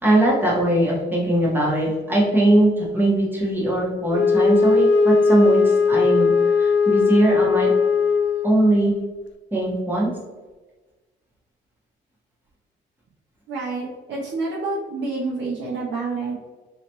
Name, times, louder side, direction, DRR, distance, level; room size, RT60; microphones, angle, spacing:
voice 1, 0.0-7.7 8.4-8.9 9.5-10.1, right 1 dB, 10° right, -5 dB, 1.4 m, -20 dB
Wind instrument woodwind instrument, 4.1-8.7, left 4 dB, 65° left, 0.5 m, -18 dB
voice 2, 13.5-16.3, right 3 dB, 65° right, -5 dB, 0.9 m, -28 dB
4.0 x 3.1 x 3.0 m, 1.2 s
cardioid pair, 90°, 20 cm